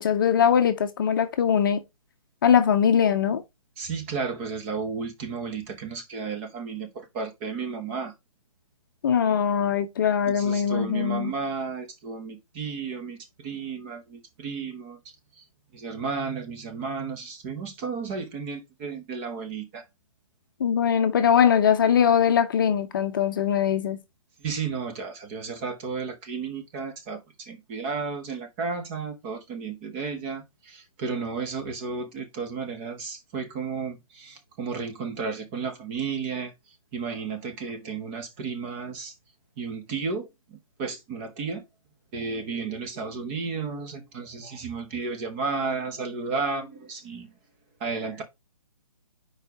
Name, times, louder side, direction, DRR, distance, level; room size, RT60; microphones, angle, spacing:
voice 1, 0.0-1.8 2.4-3.4 9.0-11.3 20.6-24.0, left 8 dB, 35° left, 0.7 m, -21 dB
voice 2, 3.8-8.1 10.2-15.0 15.4-15.5 15.7-19.8 24.4-36.5 36.9-39.1 39.6-41.6 42.1-47.3 47.8-48.2, right 5 dB, 20° right, 0.9 m, -33 dB
4.8 x 4.4 x 4.7 m
hypercardioid pair, 160°, 18 cm